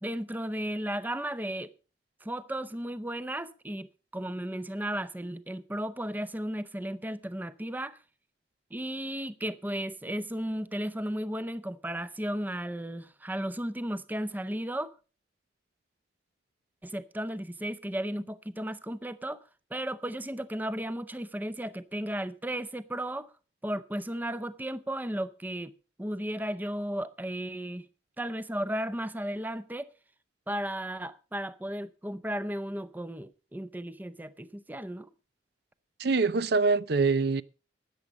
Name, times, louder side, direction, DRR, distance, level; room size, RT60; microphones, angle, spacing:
voice 1, 0.0-1.7 2.2-8.0 8.7-14.9 16.8-19.4 19.7-23.3 23.6-25.7 26.0-27.9 28.2-29.9 30.5-35.1, right 1 dB, 10° right, 0.6 m, -34 dB
voice 2, 36.0-37.4, right 4 dB, 60° right, 0.6 m, -24 dB
13.5 x 9.6 x 5.2 m
head